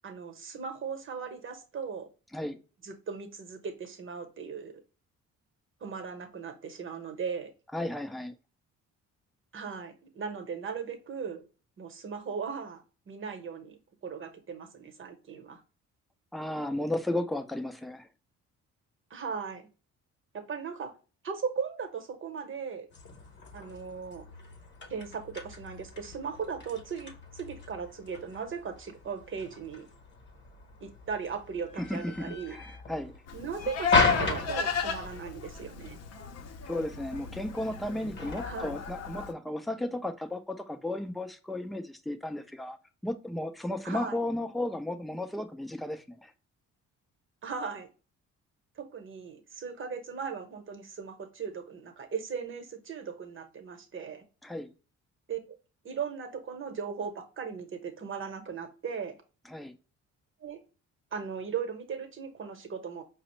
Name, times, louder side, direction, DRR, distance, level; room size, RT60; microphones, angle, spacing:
voice 1, 0.0-2.1 2.8-4.8 5.8-7.5 9.5-11.4 11.8-13.8 14.0-15.6 19.1-19.7 20.3-20.9 21.2-22.9 23.5-24.2 24.9-29.9 30.8-32.6 33.3-36.0 38.4-38.7 43.8-44.2 47.4-47.9 48.8-54.2 55.3-55.4 55.8-59.2 60.4-60.6 61.1-63.0, right 6 dB, 40° right, 0.9 m, -38 dB
voice 2, 7.7-8.3 16.3-18.1 31.8-33.2 36.7-42.8 43.0-46.3 54.4-54.7 59.5-59.7, left 1 dB, ahead, 0.4 m, -34 dB
sound 1, 22.9-38.8, left 3 dB, 40° left, 0.9 m, -37 dB
Livestock farm animals working animals, 33.3-39.3, left 6 dB, 55° left, 0.6 m, -34 dB
4.8 x 2.0 x 3.0 m
cardioid pair, 90°, 30 cm